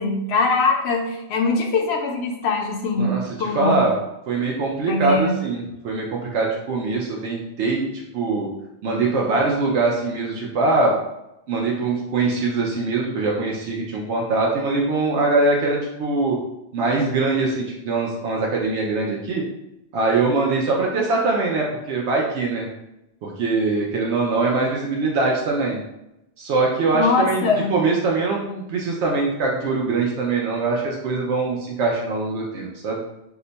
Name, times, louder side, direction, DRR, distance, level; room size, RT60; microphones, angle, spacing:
voice 1, 0.0-3.9 4.9-5.4 26.9-27.8, left 3 dB, 70° left, 2 dB, 0.8 m, -22 dB
voice 2, 3.0-3.9 4.3-8.5 8.8-10.9 11.5-16.4 16.7-19.4 19.9-22.7 23.2-25.8 26.4-33.0, right 3 dB, 80° right, -2 dB, 0.9 m, -22 dB
2.8 x 2.2 x 3.9 m, 0.89 s
omnidirectional pair, 1.2 m